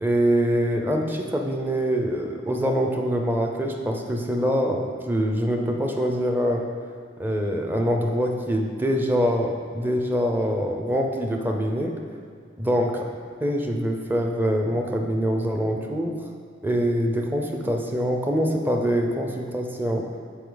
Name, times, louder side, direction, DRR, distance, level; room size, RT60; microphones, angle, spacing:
voice 1, 0.0-6.7 7.2-11.9 12.6-12.9 13.4-16.2 16.6-20.1, equal, 10° right, 2 dB, 0.6 m, -24 dB
8.4 x 5.2 x 3.9 m, 2.1 s
head